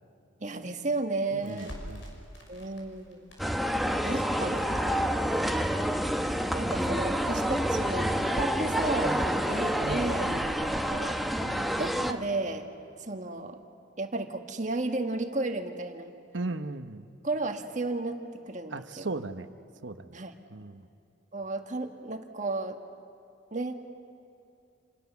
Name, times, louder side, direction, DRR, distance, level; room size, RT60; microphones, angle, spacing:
voice 1, 0.4-1.7 2.5-3.3 4.0-4.8 5.3-5.7 6.5-10.3 10.6-11.3 11.8-12.7 13.0-13.6 14.0-16.1 17.2-18.2 18.5-19.1 20.1-20.3 21.3-22.8 23.5-23.7, right 2 dB, 40° right, 5 dB, 1.6 m, -33 dB
voice 2, 1.3-2.0 9.8-10.5 11.4-11.7 16.3-17.0 18.7-19.5 19.8-20.2 20.5-20.9, right 3 dB, 70° right, 10 dB, 1.0 m, -37 dB
Crackle, 1.4-10.3, equal, 75° left, 6.1 m, -51 dB
sound 1, 3.4-12.1, equal, ahead, 0.9 m, -28 dB
28.5 x 28.0 x 7.1 m, 2.6 s
head